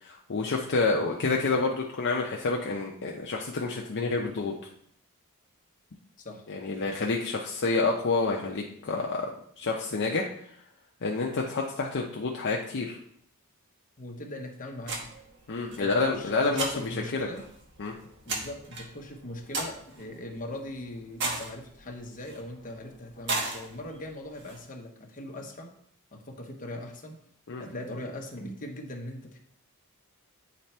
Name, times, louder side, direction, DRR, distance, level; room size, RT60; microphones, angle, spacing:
voice 1, 0.0-4.5 6.5-9.3 9.6-10.3 11.0-13.0 15.5-17.3 17.8-17.9 27.5-27.6, left 3 dB, 55° left, -1 dB, 0.6 m, -28 dB
voice 2, 14.0-15.1 15.7-17.4 18.2-25.7 26.1-27.2 27.6-29.4, left 1 dB, 35° left, 2 dB, 1.0 m, -40 dB
sound 1, 14.8-24.6, right 2 dB, 55° right, 1.2 m, -38 dB
8.6 x 3.4 x 4.3 m, 0.66 s
head